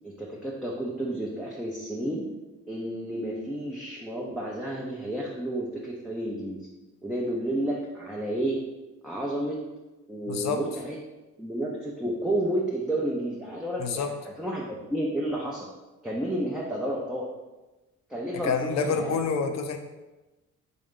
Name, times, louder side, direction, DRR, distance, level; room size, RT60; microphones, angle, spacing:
voice 1, 0.0-2.3 2.7-6.7 7.0-8.6 9.0-9.6 10.1-11.0 11.4-14.6 14.9-15.7 16.0-17.3 18.1-19.2, right 1 dB, ahead, -5 dB, 0.6 m, -31 dB
voice 2, 10.3-10.6 13.8-14.1 18.4-19.8, left 5 dB, 60° left, 6 dB, 0.6 m, -27 dB
3.8 x 3.7 x 3.6 m, 1.1 s
cardioid pair, 90°, 30 cm